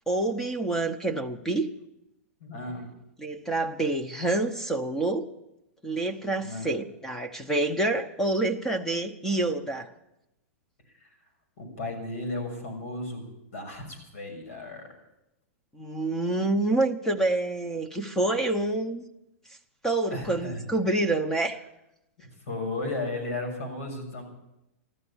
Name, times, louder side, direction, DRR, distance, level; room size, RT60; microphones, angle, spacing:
voice 1, 0.1-1.7 3.2-5.3 5.8-9.9 15.7-19.0 19.8-21.6, right 2 dB, 5° left, 0.8 m, -27 dB
voice 2, 2.4-2.9 6.4-6.7 11.0-11.1 11.6-13.2 13.5-14.9 20.1-20.6 22.5-24.2, left 2 dB, 75° left, 6.6 m, -34 dB
14.5 x 12.5 x 7.0 m
hypercardioid pair, 150°, 8 cm